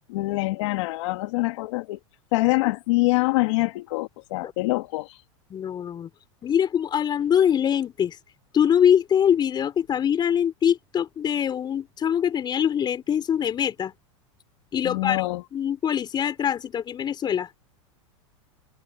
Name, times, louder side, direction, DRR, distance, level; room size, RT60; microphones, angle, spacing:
voice 1, 0.1-2.0 2.3-5.2 14.8-15.4, left 22 dB, 65° left, 2.2 m, -25 dB
voice 2, 5.5-6.1 6.4-8.2 8.5-13.9 14.7-15.2 15.5-17.5, left 9 dB, 25° left, 4.9 m, -23 dB
supercardioid pair, 120°, 16 cm